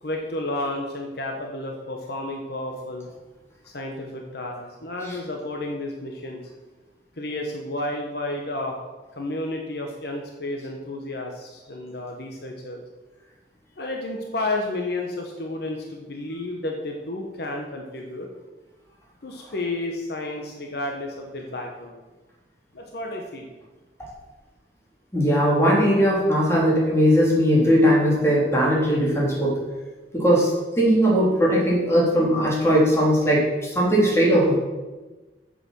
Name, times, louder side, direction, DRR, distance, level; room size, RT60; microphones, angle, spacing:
voice 1, 0.0-3.1 3.6-6.4 7.2-8.8 9.1-12.8 13.8-18.3 19.2-22.0 22.7-23.5, left 2 dB, 60° left, 1 dB, 1.3 m, -31 dB
voice 2, 25.1-29.6 30.1-30.5 30.8-34.6, equal, 15° left, -4 dB, 3.4 m, -19 dB
8.5 x 7.1 x 7.5 m, 1.2 s
head